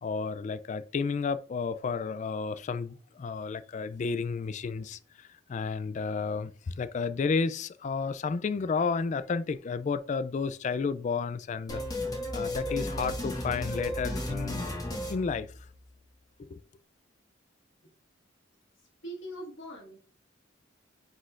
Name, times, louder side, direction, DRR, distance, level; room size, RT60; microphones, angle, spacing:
voice 1, 0.0-11.8 12.3-14.7 15.1-15.5 16.4-16.6, left 5 dB, 40° left, 0.3 m, -32 dB
sound 1, 11.7-16.0, left 1 dB, 20° left, 1.4 m, -34 dB
voice 2, 19.0-20.0, right 1 dB, 70° left, 1.7 m, -41 dB
9.5 x 4.1 x 2.5 m
head